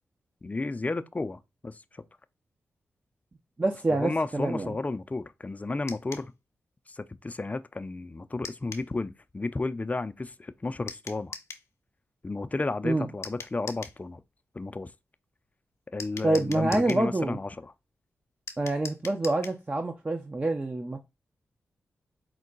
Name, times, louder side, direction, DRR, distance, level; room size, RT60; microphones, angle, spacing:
voice 1, 0.4-2.0 3.9-6.3 6.9-11.4 12.2-14.2 14.5-14.9 15.9-17.7, left 3 dB, 30° left, 0.5 m, -33 dB
voice 2, 3.6-4.7 12.8-13.1 16.2-17.4 18.6-21.0, right 2 dB, 30° right, 0.6 m, -27 dB
sound 1, 5.9-6.3 8.4-8.9 10.9-11.7 13.2-14.0 16.0-17.1 18.5-19.6, left 5 dB, 70° left, 0.7 m, -42 dB
4.6 x 2.2 x 3.9 m
supercardioid pair, 40°, 5 cm